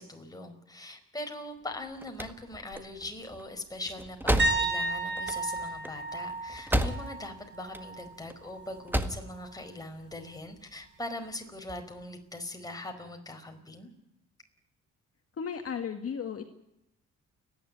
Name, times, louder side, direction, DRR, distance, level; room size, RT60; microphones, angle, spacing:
voice 1, 0.0-13.9, left 1 dB, 10° left, 4 dB, 4.9 m, -41 dB
sound 1, 1.7-7.3 7.6-8.4 8.7-9.3, right 1 dB, 5° right, 1.7 m, -32 dB
sound 2, 4.4-8.1 8.5-8.8 11.7-11.8, right 2 dB, 40° right, 5.9 m, -33 dB
voice 2, 15.4-16.4, left 7 dB, 50° left, 5 dB, 2.0 m, -34 dB
29.5 x 11.0 x 9.5 m, 0.80 s
cardioid pair, 90°, 30 cm